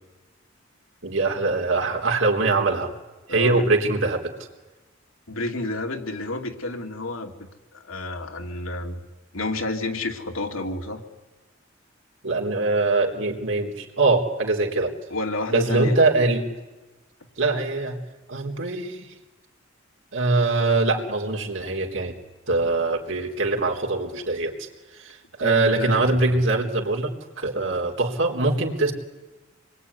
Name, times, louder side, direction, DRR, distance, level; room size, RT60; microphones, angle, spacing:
voice 1, 1.0-2.9 3.3-4.3 12.2-14.9 15.5-16.5 17.4-18.0 18.3-19.1 20.1-22.1 22.5-24.7 24.9-28.9, right 3 dB, 65° right, 1 dB, 3.9 m, -23 dB
voice 2, 3.3-3.7 5.3-7.3 7.7-9.0 9.3-11.0 15.1-16.0 25.4-26.2, left 2 dB, 85° left, 4 dB, 2.7 m, -30 dB
27.0 x 22.5 x 9.8 m, 1.2 s
head